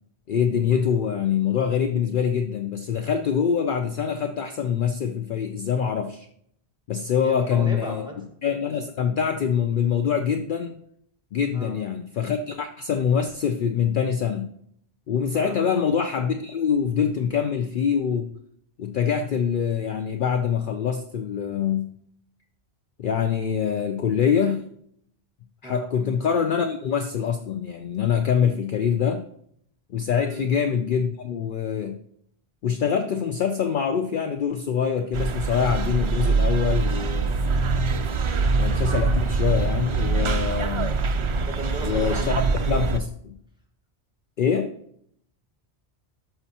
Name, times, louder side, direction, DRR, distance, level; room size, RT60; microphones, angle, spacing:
voice 1, 0.3-6.3 6.9-8.1 8.4-10.7 11.3-14.5 15.1-18.3 18.8-21.9 23.0-24.7 25.6-29.2 29.9-32.0 32.6-37.4 38.1-38.2 38.6-40.9 41.8-43.4 44.4-44.7, left 7 dB, 60° left, 7 dB, 0.6 m, -24 dB
voice 2, 7.2-8.1 11.5-11.7 15.3-15.5 25.6-25.9 30.2-30.4 37.9-38.2 41.4-42.4, right 1 dB, 5° right, -1 dB, 1.5 m, -35 dB
sound 1, 35.1-43.0, right 4 dB, 55° right, 0.3 m, -24 dB
12.5 x 5.7 x 2.8 m, 0.69 s
omnidirectional pair, 1.1 m